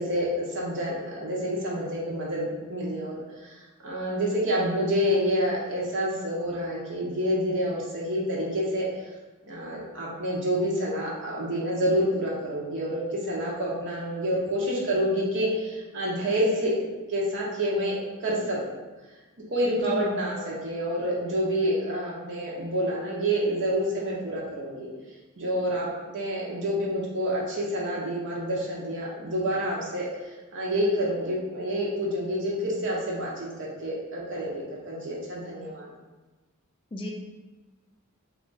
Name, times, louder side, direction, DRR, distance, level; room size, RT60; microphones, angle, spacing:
voice 1, 0.0-3.5 3.8-8.9 9.5-16.7 17.1-18.6 19.5-24.9 25.4-25.9 26.1-30.1 30.5-35.9, equal, 55° right, -4 dB, 0.8 m, -28 dB
voice 2, 19.8-20.2 36.9-37.1, equal, 25° left, 0 dB, 0.3 m, -33 dB
3.0 x 2.4 x 3.8 m, 1.2 s
head